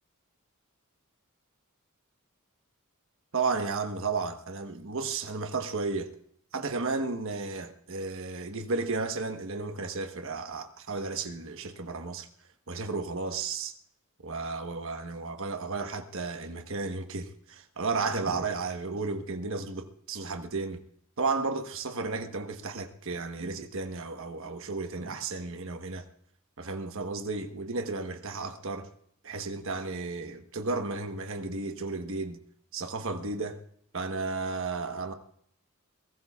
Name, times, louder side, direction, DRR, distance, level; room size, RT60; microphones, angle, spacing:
voice 1, 3.3-6.1 6.5-12.3 12.7-13.8 14.2-20.8 21.2-26.0 26.6-28.9 29.2-32.4 32.7-33.6 33.9-35.1, right 3 dB, 65° right, 1.2 m, -33 dB
22.0 x 18.0 x 2.4 m
head